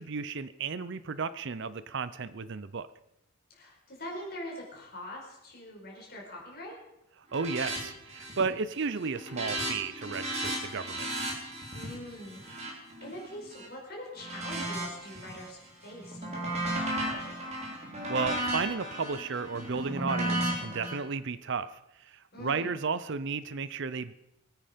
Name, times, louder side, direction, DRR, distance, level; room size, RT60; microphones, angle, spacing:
voice 1, 0.0-2.9 7.3-11.1 18.1-21.7 22.0-24.1, right 5 dB, 55° right, 15 dB, 0.6 m, -33 dB
voice 2, 3.5-6.8 11.7-17.5 22.3-22.8, left 1 dB, 45° left, -2 dB, 4.8 m, -44 dB
sound 1, 7.3-7.8 8.1-8.5 8.8-13.7 14.2-15.5 15.9-20.9, right 1 dB, 30° right, 3.4 m, -35 dB
22.0 x 9.2 x 5.1 m, 0.85 s
head